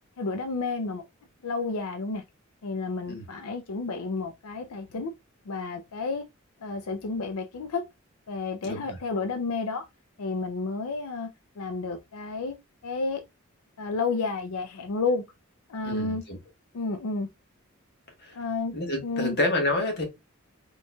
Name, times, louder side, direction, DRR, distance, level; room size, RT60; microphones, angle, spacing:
voice 1, 0.2-1.0 1.4-2.2 2.6-5.1 5.5-6.2 6.6-7.8 8.3-9.9 10.2-11.3 11.6-12.6 12.8-13.2 13.8-15.2 15.7-16.2 16.7-17.3 18.3-18.7 19.0-19.4, left 3 dB, 85° left, 0.5 m, -31 dB
voice 2, 8.6-9.0 15.8-16.4 18.2-18.3 18.7-20.0, left 1 dB, 50° left, 1.3 m, -28 dB
4.2 x 3.0 x 2.2 m
head